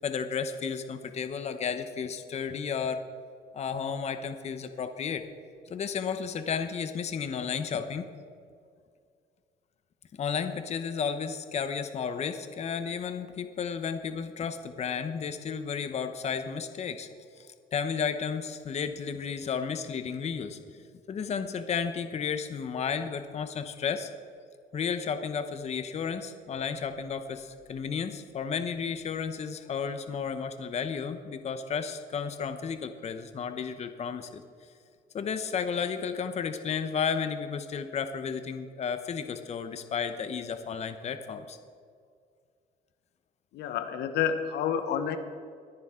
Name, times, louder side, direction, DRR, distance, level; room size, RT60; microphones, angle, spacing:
voice 1, 0.0-3.0 3.5-5.3 5.7-8.1 10.1-17.1 17.4-24.1 24.7-34.4 35.1-41.6, left 6 dB, 40° left, 9 dB, 0.9 m, -33 dB
voice 2, 43.5-45.2, left 8 dB, 80° left, 8 dB, 1.1 m, -29 dB
22.0 x 10.0 x 3.8 m, 2.2 s
cardioid pair, 110°, 17 cm